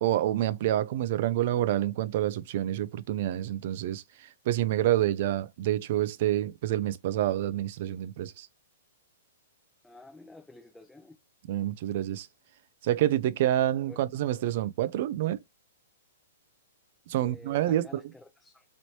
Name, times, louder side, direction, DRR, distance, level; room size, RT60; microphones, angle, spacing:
voice 1, 0.0-4.0 4.5-8.5 11.5-12.3 12.8-15.4 17.1-18.0, right 13 dB, 50° right, 0.4 m, -27 dB
voice 2, 9.8-11.1 13.9-14.0 17.2-18.6, left 2 dB, 5° left, 0.5 m, -50 dB
3.0 x 3.0 x 2.7 m
hypercardioid pair, 145°, 0 cm